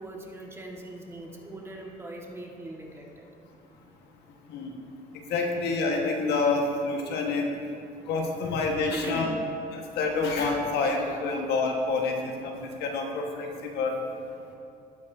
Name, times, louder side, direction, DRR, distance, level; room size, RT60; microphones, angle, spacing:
voice 1, 0.0-3.3 8.9-9.4, right 1 dB, 15° right, -1 dB, 1.8 m, -40 dB
voice 2, 5.3-7.4 8.1-9.3 9.7-13.5 13.7-14.0, left 3 dB, 80° left, 1 dB, 1.6 m, -27 dB
19.0 x 8.4 x 2.8 m, 2.8 s
cardioid pair, 110°, 17 cm